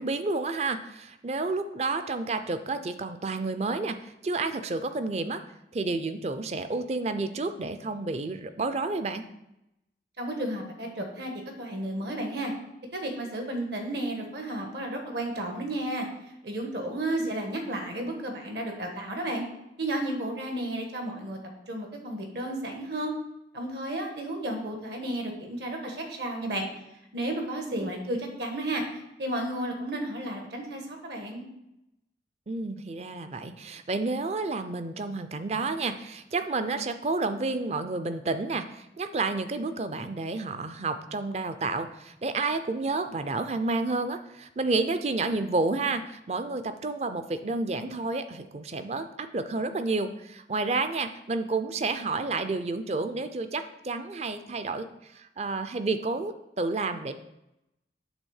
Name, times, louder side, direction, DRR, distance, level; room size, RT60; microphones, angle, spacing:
voice 1, 0.0-5.4 5.7-9.2 17.2-17.3 27.7-27.9 32.5-57.1, right 3 dB, 35° right, 10 dB, 0.4 m, -30 dB
voice 2, 10.2-11.3 11.6-12.5 12.9-16.1 16.4-19.4 19.8-21.4 21.7-23.1 23.5-26.7 27.1-31.4, right 1 dB, 65° right, 3 dB, 1.4 m, -32 dB
8.2 x 3.5 x 6.4 m, 0.87 s
head